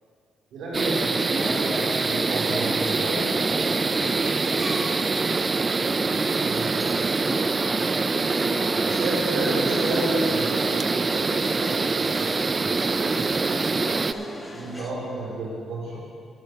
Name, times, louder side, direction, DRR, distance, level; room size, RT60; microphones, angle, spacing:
voice 1, 0.5-3.2 6.4-6.7 8.8-10.7 13.0-13.7 14.1-16.0, right 1 dB, 75° right, -4 dB, 3.5 m, -31 dB
sound 1, 0.7-14.1, right 4 dB, 30° right, 0.4 m, -24 dB
sound 2, 1.2-14.9, left 1 dB, 15° left, 1.4 m, -37 dB
voice 2, 3.4-5.0 8.4-9.0 10.8-12.4 15.9-16.0, equal, 5° right, -2 dB, 2.7 m, -40 dB
18.0 x 7.2 x 4.5 m, 2.4 s
cardioid pair, 90°, 0 cm